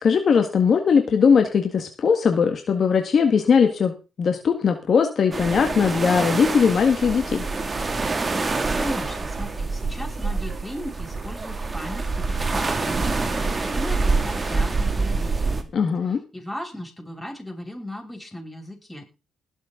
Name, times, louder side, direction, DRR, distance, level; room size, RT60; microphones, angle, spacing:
voice 1, 0.0-7.4 15.7-16.2, left 6 dB, 50° left, 5 dB, 1.8 m, -20 dB
sound 1, 5.3-15.6, right 3 dB, 30° right, 2.4 m, -26 dB
voice 2, 8.8-15.7 16.3-19.1, left 1 dB, 5° left, 0 dB, 6.8 m, -36 dB
20.0 x 7.4 x 3.9 m, 0.31 s
cardioid pair, 90°, 0 cm